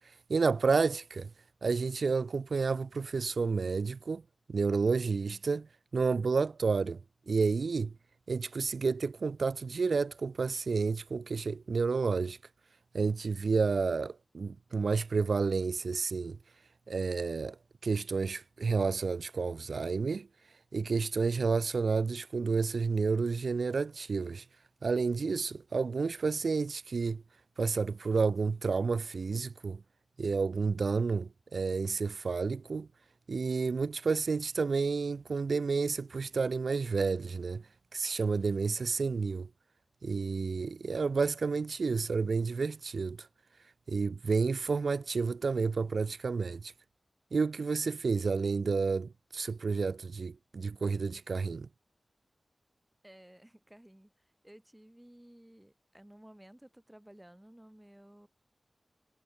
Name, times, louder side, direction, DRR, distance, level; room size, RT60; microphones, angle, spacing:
voice 1, 0.3-1.3 1.6-4.2 4.5-7.0 7.3-7.9 8.3-12.4 12.9-16.4 16.9-17.6 17.8-20.3 20.7-24.4 24.8-27.2 27.6-29.8 30.2-32.9 33.3-37.6 37.9-39.5 40.0-43.3 43.9-46.7 47.3-51.7, right 4 dB, 80° right, 0.8 m, -30 dB
voice 2, 53.0-58.3, right 1 dB, 10° right, 7.5 m, -55 dB
wide cardioid pair, 80°, 0 cm